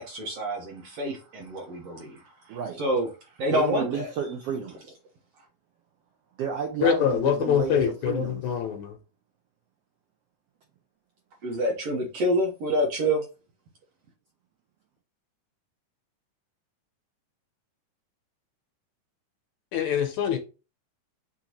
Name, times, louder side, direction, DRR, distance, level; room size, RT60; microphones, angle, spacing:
voice 1, 0.0-3.1 3.4-4.1 11.4-13.2, equal, 65° right, 1.6 m, -27 dB
voice 2, 2.5-2.8 3.5-4.9 6.4-8.4, right 7 dB, 90° right, 1.3 m, -32 dB
voice 3, 6.8-9.0 19.7-20.4, left 8 dB, 75° left, 1.8 m, -24 dB
6.2 x 2.9 x 2.9 m
omnidirectional pair, 3.7 m